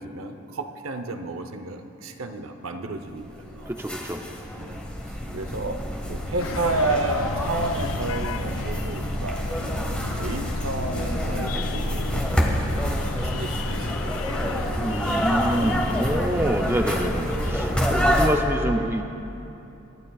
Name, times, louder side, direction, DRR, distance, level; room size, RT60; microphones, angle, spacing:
voice 1, 0.0-3.7 4.6-4.9 5.3-5.8 6.1-9.5 10.0-12.3 12.7-14.2, right 2 dB, 80° right, 6 dB, 0.8 m, -31 dB
sound 1, 3.2-18.3, equal, 5° left, 1.1 m, -27 dB
voice 2, 3.7-4.2 14.8-19.0, right 1 dB, 10° right, 4 dB, 0.5 m, -26 dB
sound 2, 6.4-17.7, left 5 dB, 75° left, 0.4 m, -36 dB
24.0 x 12.5 x 2.4 m, 2.9 s
head